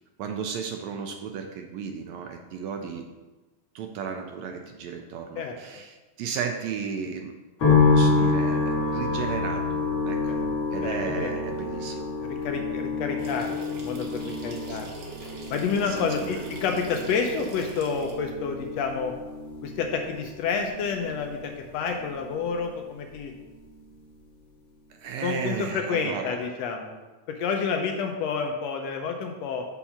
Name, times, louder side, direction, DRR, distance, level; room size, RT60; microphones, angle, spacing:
voice 1, 0.2-3.1 3.7-7.3 7.7-9.8 10.0-10.3 10.7-12.1 14.7-14.8 15.9-16.6 24.9-26.4, right 6 dB, 80° right, 4 dB, 1.7 m, -34 dB
sound 1, 7.6-22.9 23.1-24.0, left 4 dB, 50° left, 1.9 m, -28 dB
voice 2, 10.8-11.3 12.3-14.9 15.2-19.1 19.6-23.3 25.2-27.0 27.3-29.7, left 5 dB, 75° left, 3 dB, 1.6 m, -29 dB
sound 2, 13.2-18.1, right 3 dB, 55° right, 1.4 m, -43 dB
7.0 x 3.7 x 5.8 m, 1.2 s
omnidirectional pair, 3.3 m